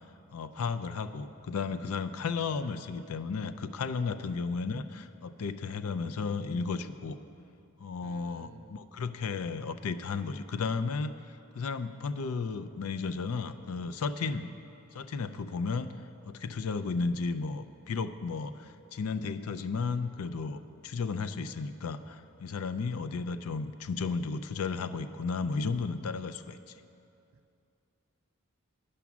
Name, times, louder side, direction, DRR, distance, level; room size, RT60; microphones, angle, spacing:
voice 1, 0.3-7.2 7.8-11.1 11.5-14.5 14.9-15.9 16.3-26.6, left 4 dB, 80° left, 11 dB, 0.4 m, -34 dB
voice 2, 4.3-4.9 8.0-8.8 14.2-14.5, right 4 dB, 65° right, 10 dB, 0.4 m, -50 dB
9.9 x 6.1 x 7.0 m, 2.6 s
head